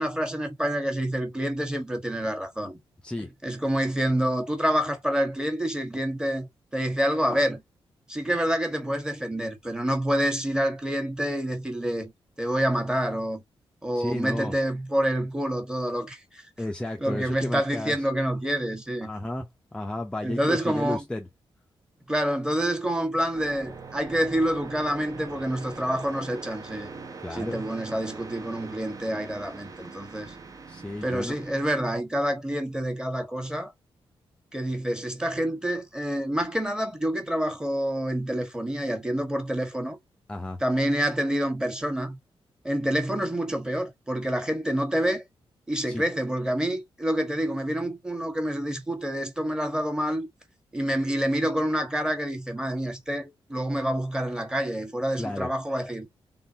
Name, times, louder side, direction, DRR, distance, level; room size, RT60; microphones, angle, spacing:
voice 1, 0.0-2.8 3.4-7.6 8.1-12.1 12.4-13.4 13.8-16.4 17.0-19.1 20.2-21.0 22.1-26.9 27.3-30.3 31.0-33.7 34.5-40.0 40.6-42.2 42.6-45.2 45.7-50.3 50.7-56.1, equal, 5° right, 1.4 m, -27 dB
voice 2, 13.9-14.5 16.6-18.1 19.0-21.3 27.2-27.6 30.7-31.4 40.3-40.6 45.9-46.0 55.2-55.5, left 1 dB, 10° left, 0.6 m, -33 dB
sound 1, 23.3-31.7, right 4 dB, 40° right, 0.8 m, -42 dB
3.8 x 3.7 x 2.7 m
wide cardioid pair, 135°, 10 cm